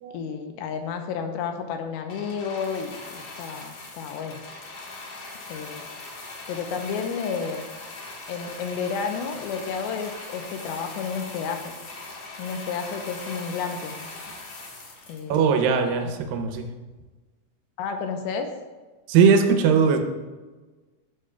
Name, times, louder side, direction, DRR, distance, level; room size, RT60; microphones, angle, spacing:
voice 1, 0.1-4.4 5.5-5.9 6.5-7.6 8.3-11.7 12.4-14.1 15.1-15.4 16.0-16.1 17.8-18.5, left 6 dB, 85° left, 5 dB, 2.5 m, -31 dB
sound 1, 2.1-15.8 16.5-16.6, left 2 dB, 55° left, 1.9 m, -40 dB
voice 2, 15.3-16.7 19.1-20.0, right 6 dB, 75° right, 5 dB, 2.2 m, -19 dB
11.5 x 7.5 x 2.3 m, 1.3 s
omnidirectional pair, 4.6 m